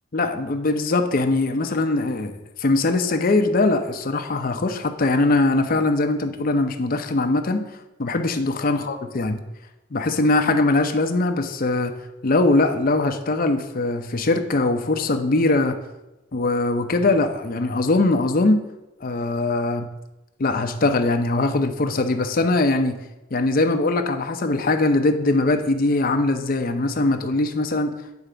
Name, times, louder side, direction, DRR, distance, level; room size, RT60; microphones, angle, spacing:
voice 1, 0.1-7.6 8.0-9.4 9.9-11.9 12.2-15.8 16.3-18.6 19.0-19.9 20.4-23.0 23.3-27.9, left 2 dB, 50° left, 6 dB, 0.6 m, -21 dB
9.4 x 3.3 x 5.0 m, 0.98 s
head